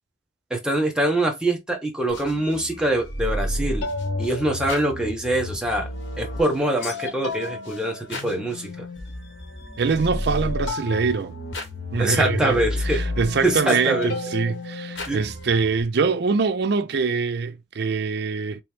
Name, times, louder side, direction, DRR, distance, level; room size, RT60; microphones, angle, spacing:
voice 1, 0.5-3.9 4.2-5.9 6.2-8.8 12.0-13.0 13.4-14.1 15.1-15.2, right 1 dB, 5° right, 0.8 m, -24 dB
sound 1, 2.1-15.8, left 2 dB, 85° left, 1.1 m, -31 dB
voice 2, 9.8-11.3 11.9-18.6, right 5 dB, 55° right, 0.4 m, -24 dB
3.3 x 3.0 x 3.3 m
head